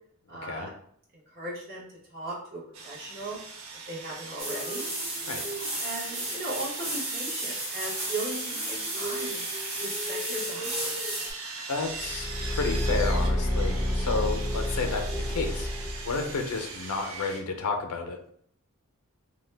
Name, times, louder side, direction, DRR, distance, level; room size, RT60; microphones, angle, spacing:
voice 1, 0.3-0.7 1.3-3.4 3.9-4.8 5.8-9.4 9.8-11.0, right 2 dB, 40° right, -6 dB, 1.2 m, -38 dB
Sawing, 2.7-17.4, right 4 dB, 65° right, 0.5 m, -40 dB
sound 1, 4.4-11.3, right 1 dB, 25° right, 0.7 m, -33 dB
voice 2, 11.7-12.3 12.5-15.7 16.0-18.2, left 4 dB, 85° left, 5 dB, 0.5 m, -31 dB
Car / Engine, 11.9-16.4, left 1 dB, 15° left, 0.4 m, -29 dB
2.8 x 2.2 x 3.3 m, 0.63 s
head